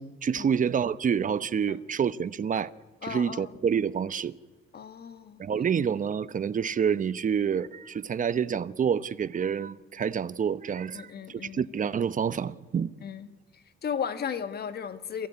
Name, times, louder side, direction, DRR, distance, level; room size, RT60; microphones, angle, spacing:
voice 1, 0.0-2.7 3.0-4.3 5.4-12.9, right 7 dB, 40° right, 0.9 m, -28 dB
voice 2, 3.0-3.5 4.7-5.4 10.9-11.6 13.0-13.3 13.5-15.3, left 7 dB, 55° left, 1.5 m, -35 dB
27.0 x 15.0 x 9.7 m
cardioid pair, 90°, 20 cm